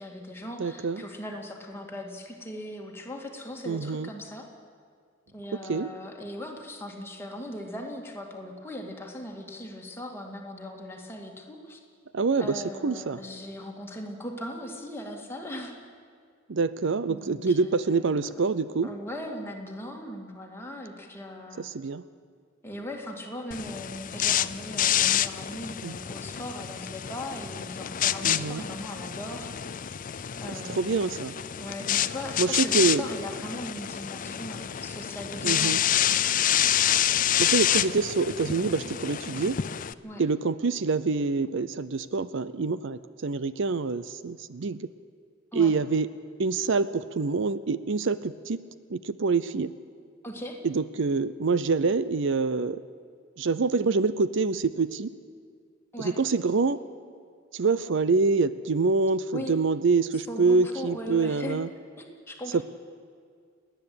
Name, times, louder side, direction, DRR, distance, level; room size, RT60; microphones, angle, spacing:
voice 1, 0.0-4.5 5.3-11.8 12.4-15.8 17.1-18.1 18.8-21.6 22.6-29.5 30.4-31.2 31.6-36.1 40.0-40.2 45.5-45.7 50.2-50.6 55.9-56.1 59.3-59.5 60.1-61.6 62.0-62.6, left 1 dB, 10° left, 0 dB, 2.4 m, -39 dB
voice 2, 0.6-1.0 3.7-4.1 5.7-5.9 12.1-13.2 16.5-18.9 21.6-22.0 25.8-25.9 28.2-28.6 30.7-31.3 32.4-33.0 35.4-35.8 37.4-39.6 40.2-44.9 45.5-46.1 46.4-48.6 48.9-49.7 50.6-52.8 53.4-55.1 56.0-56.8 57.5-61.7 62.5-62.6, right 4 dB, 65° right, 15 dB, 0.6 m, -26 dB
sound 1, 23.5-39.9, left 11 dB, 40° left, 0.5 m, -28 dB
29.5 x 10.0 x 8.7 m, 2.1 s
head